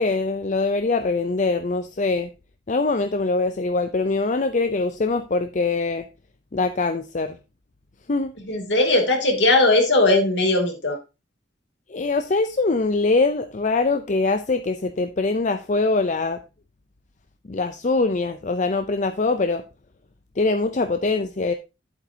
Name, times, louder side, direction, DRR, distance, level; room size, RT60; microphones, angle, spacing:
voice 1, 0.0-2.3 2.7-6.0 6.5-7.4 8.1-8.3 11.9-16.4 17.5-19.6 20.4-21.5, left 3 dB, 40° left, 0.6 m, -23 dB
voice 2, 8.4-11.0, left 2 dB, 65° left, 2.9 m, -19 dB
11.0 x 8.3 x 2.8 m
head